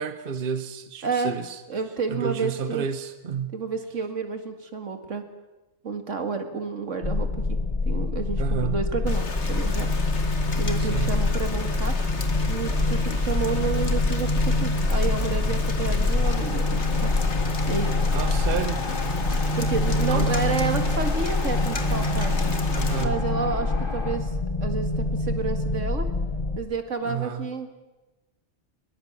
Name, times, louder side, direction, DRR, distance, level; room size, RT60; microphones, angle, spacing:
voice 1, 0.0-1.6 2.1-3.6 8.4-8.8 10.8-11.2 18.1-18.9 20.1-20.3 22.7-23.3 27.0-27.5, right 7 dB, 50° right, 10 dB, 1.2 m, -31 dB
voice 2, 1.0-1.4 1.7-2.9 3.5-5.2 5.8-9.9 10.6-11.9 12.5-17.1 17.7-17.9 19.6-22.4 23.0-24.3 24.6-26.1 26.6-27.7, right 5 dB, 80° right, 7 dB, 2.4 m, -30 dB
sound 1, 7.0-26.6, left 2 dB, 30° left, 1.5 m, -25 dB
Rain, 9.1-23.0, left 4 dB, 65° left, 2.1 m, -35 dB
sound 2, 16.2-24.2, left 3 dB, 45° left, 2.5 m, -36 dB
21.5 x 21.5 x 7.4 m, 1.1 s
omnidirectional pair, 1.3 m